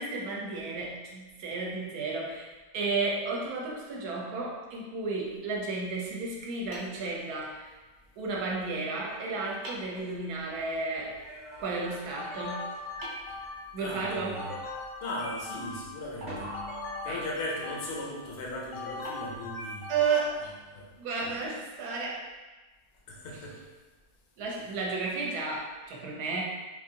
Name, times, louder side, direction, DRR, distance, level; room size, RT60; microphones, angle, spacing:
voice 1, 0.0-2.5 2.7-7.7 8.2-11.2 11.6-12.7 13.7-14.4 17.0-17.2 19.9-20.4 21.0-22.2 24.4-26.4, right 4 dB, 70° right, -2 dB, 1.1 m, -33 dB
sound 1, 6.7-7.8 9.0-9.1 9.6-10.1 13.0-14.2 16.2-17.3 19.0-21.1, right 1 dB, 50° right, 1.2 m, -48 dB
sound 2, 8.8-10.7 11.1-13.5 14.0-14.9 16.3-17.9 21.2-21.9, equal, 25° right, 0.7 m, -46 dB
sound 3, 12.2-13.8 14.4-16.1 16.5-18.2 18.7-20.4, left 3 dB, 85° left, 1.2 m, -40 dB
voice 2, 13.8-14.5 15.0-16.5 17.0-19.9 20.4-20.9 23.1-23.6, left 1 dB, 60° left, -3 dB, 0.6 m, -38 dB
3.7 x 2.6 x 2.7 m, 1.2 s
omnidirectional pair, 1.8 m